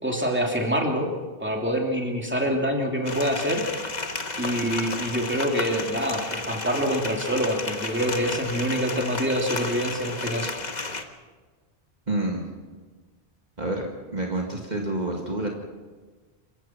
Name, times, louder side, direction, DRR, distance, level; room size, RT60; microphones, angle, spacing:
voice 1, 0.0-1.1 1.4-3.6 4.4-10.5, equal, 10° right, 1 dB, 3.0 m, -26 dB
sound 1, 3.0-11.0, left 3 dB, 45° left, 1.5 m, -32 dB
voice 2, 12.1-12.5 13.6-13.9 14.1-15.5, right 2 dB, 45° right, 0 dB, 2.2 m, -28 dB
28.0 x 16.0 x 6.0 m, 1.4 s
omnidirectional pair, 1.1 m